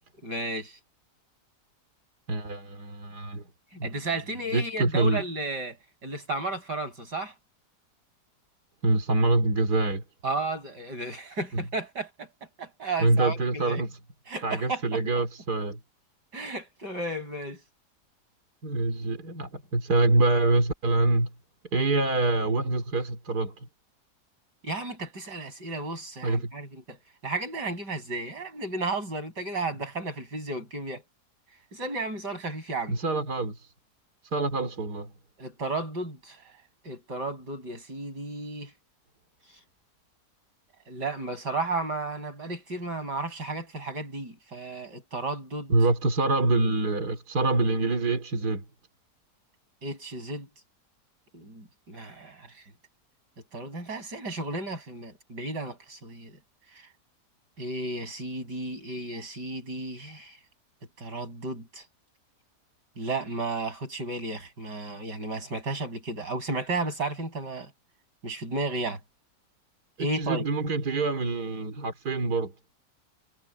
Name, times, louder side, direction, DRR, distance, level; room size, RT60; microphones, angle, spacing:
voice 1, 0.2-0.7 3.8-7.3 10.2-12.3 12.6-13.8 14.3-15.0 16.3-17.6 24.6-27.0 27.2-31.0 31.7-33.0 35.4-36.4 36.8-38.7 40.9-45.7 49.8-50.5 51.3-52.5 53.5-56.3 57.6-60.4 61.0-61.8 63.0-67.7 68.2-69.0 70.0-70.4, right 2 dB, 90° right, 7.9 m, -33 dB
voice 2, 2.3-3.4 3.7-4.0 4.5-5.2 8.8-10.0 11.5-11.6 13.0-13.9 14.4-15.8 18.6-21.3 21.7-23.7 26.2-26.5 32.9-33.7 34.3-35.1 45.7-48.6 70.0-72.5, right 2 dB, 70° right, 3.4 m, -25 dB
omnidirectional pair, 1.8 m